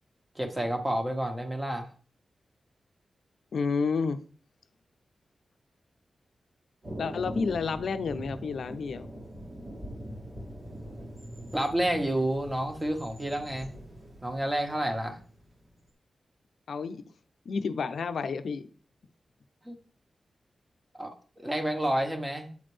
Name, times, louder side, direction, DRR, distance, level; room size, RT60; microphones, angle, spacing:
voice 1, 0.3-1.9 11.5-13.7 14.2-15.2 19.6-19.7 20.9-22.5, right 1 dB, 20° right, 4 dB, 1.5 m, -29 dB
voice 2, 3.5-4.2 7.0-9.1 16.7-17.0 17.5-18.7, left 5 dB, 80° left, 11 dB, 0.5 m, -30 dB
Thunder, 6.8-15.8, equal, 55° right, 2.1 m, -43 dB
8.3 x 4.2 x 3.3 m, 0.41 s
cardioid pair, 45°, 0 cm